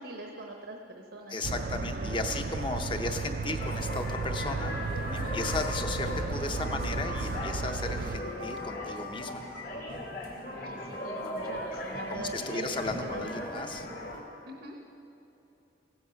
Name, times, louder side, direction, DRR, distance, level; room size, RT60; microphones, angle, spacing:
voice 1, 0.0-2.6 5.1-5.4 10.5-12.7 12.9-13.7 14.4-14.8, right 1 dB, 80° right, 2 dB, 0.9 m, -43 dB
voice 2, 1.3-4.8 5.1-9.4 12.1-13.9, left 3 dB, 30° left, 5 dB, 0.7 m, -35 dB
sound 1, 1.4-8.2, right 4 dB, 55° right, 0.4 m, -34 dB
sound 2, 3.6-14.2, left 1 dB, 55° left, 1.6 m, -38 dB
15.5 x 8.1 x 5.7 m, 2.9 s
head